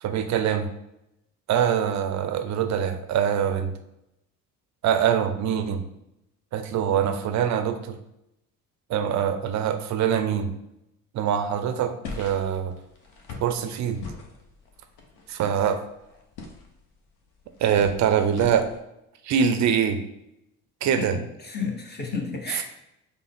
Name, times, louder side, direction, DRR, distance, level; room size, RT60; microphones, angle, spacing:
voice 1, 0.0-0.7 1.5-3.7 4.8-5.8 6.5-8.0 8.9-10.5 11.1-12.7 13.4-14.0 15.3-15.8 17.6-18.7 19.2-20.0 20.8-21.2, right 8 dB, 40° right, 8 dB, 0.6 m, -24 dB
sound 1, 12.0-18.8, left 4 dB, 60° left, 0.9 m, -42 dB
voice 2, 21.0-22.6, left 4 dB, 25° left, 2 dB, 0.9 m, -32 dB
5.4 x 2.1 x 3.5 m, 0.83 s
hypercardioid pair, 55°, 43 cm